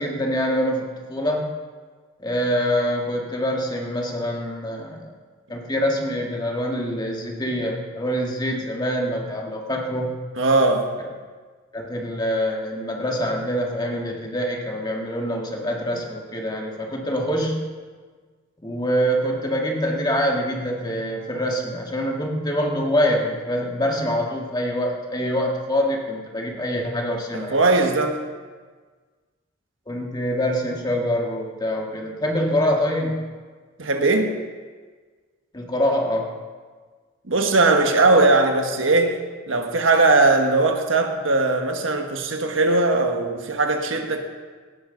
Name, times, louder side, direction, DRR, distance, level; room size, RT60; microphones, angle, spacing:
voice 1, 0.0-1.5 2.2-5.1 5.5-10.2 11.7-17.7 18.6-27.6 29.9-33.3 35.5-36.3, equal, 20° left, 0 dB, 1.8 m, -25 dB
voice 2, 10.4-10.9 27.3-28.2 33.8-34.4 37.3-39.2 39.5-44.2, right 3 dB, 75° right, 4 dB, 1.4 m, -19 dB
17.5 x 12.5 x 3.9 m, 1.5 s
head